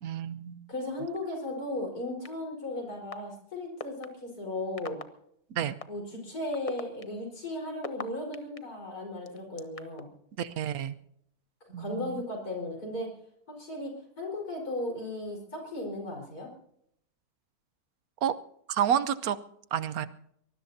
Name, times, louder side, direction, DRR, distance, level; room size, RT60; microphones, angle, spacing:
voice 1, 0.0-0.6 5.5-5.7 10.4-10.9 11.7-12.2 18.2-18.3 18.7-19.4 19.7-20.1, right 9 dB, 70° right, 14 dB, 1.3 m, -29 dB
voice 2, 0.7-5.0 5.9-10.1 11.8-13.1 13.5-16.5, left 1 dB, 80° left, 0 dB, 5.3 m, -36 dB
sound 1, 2.2-2.3 3.1-3.2 3.8-4.1 4.8-5.0 5.8-5.9 6.5-8.6 9.3-10.0, left 4 dB, 30° left, 0.8 m, -38 dB
24.0 x 20.0 x 2.8 m, 0.72 s
omnidirectional pair, 1.6 m